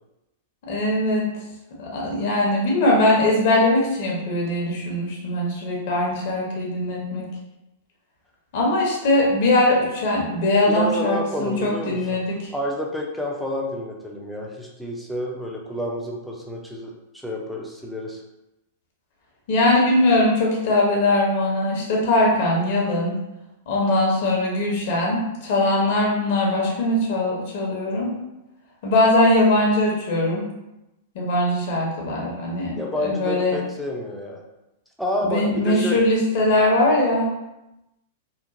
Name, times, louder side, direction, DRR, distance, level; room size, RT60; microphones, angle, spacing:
voice 1, 0.7-1.2 1.8-7.3 8.5-12.5 19.5-23.2 23.7-28.1 28.8-30.4 31.1-33.6 35.2-37.3, left 1 dB, 60° left, -2 dB, 0.8 m, -21 dB
voice 2, 10.7-12.2 12.5-16.9 17.2-18.2 32.8-34.4 35.0-36.0, equal, ahead, -2 dB, 0.5 m, -29 dB
2.9 x 2.1 x 2.5 m, 0.93 s
hypercardioid pair, 110°, 0 cm